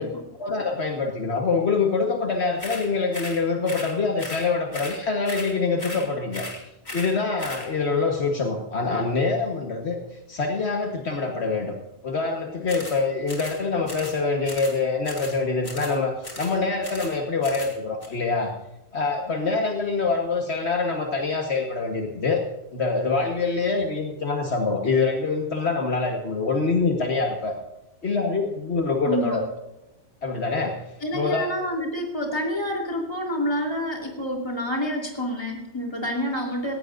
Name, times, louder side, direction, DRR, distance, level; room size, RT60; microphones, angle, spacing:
voice 1, 0.3-6.4 6.9-10.0 10.3-11.8 12.0-18.5 18.9-22.4 22.7-27.6 28.0-29.4 30.2-30.8 31.1-31.5, left 4 dB, 65° left, 2 dB, 1.7 m, -25 dB
sound 1, 2.6-2.9 3.1-3.4 3.7-3.9 4.2-4.5 4.7-5.0 5.3-5.5 5.8-6.1 6.3-6.6 6.9-7.1 7.4-7.7 12.7-13.0 13.3-13.6 13.9-14.2 14.5-14.8 15.0-15.4 15.6-16.0 16.2-16.5 16.8-17.1 17.4-17.7 18.0-18.1, left 1 dB, 40° left, 3.5 m, -37 dB
voice 2, 29.0-29.4 31.0-36.7, equal, 20° left, 2 dB, 3.5 m, -28 dB
18.0 x 15.5 x 2.6 m, 0.96 s
omnidirectional pair, 1.2 m